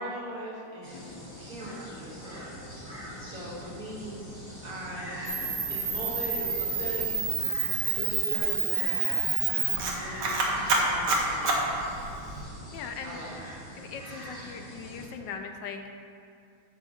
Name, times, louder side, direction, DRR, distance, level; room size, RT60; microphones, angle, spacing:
voice 1, 0.0-2.5 2.8-4.3 4.6-7.4 8.0-11.8 13.0-13.4, right 1 dB, 55° right, -6 dB, 1.9 m, -40 dB
sound 1, 0.8-15.1, equal, 20° left, 1.7 m, -43 dB
voice 2, 0.9-1.2 12.7-13.2 13.8-16.0, left 6 dB, 85° left, 5 dB, 1.3 m, -40 dB
Camera, 5.3-12.4, right 4 dB, 75° right, 1.5 m, -28 dB
9.0 x 6.9 x 2.4 m, 2.4 s
omnidirectional pair, 1.9 m